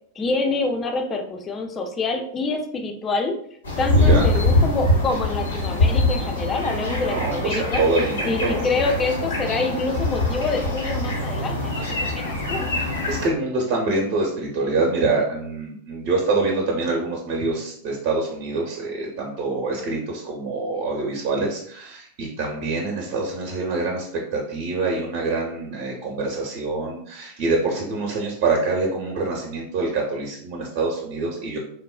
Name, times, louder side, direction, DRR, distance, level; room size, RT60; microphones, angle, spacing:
voice 1, 0.2-3.4 3.8-7.8 8.2-12.7, left 3 dB, 20° left, 4 dB, 0.4 m, -26 dB
sound 1, 3.6-13.3, left 2 dB, 70° left, 0.7 m, -23 dB
voice 2, 3.9-4.3 7.1-8.6 13.1-24.1 24.3-31.6, right 3 dB, 45° right, -1 dB, 0.6 m, -25 dB
3.2 x 2.0 x 2.3 m, 0.64 s
figure-of-eight pair, 90°, 0 cm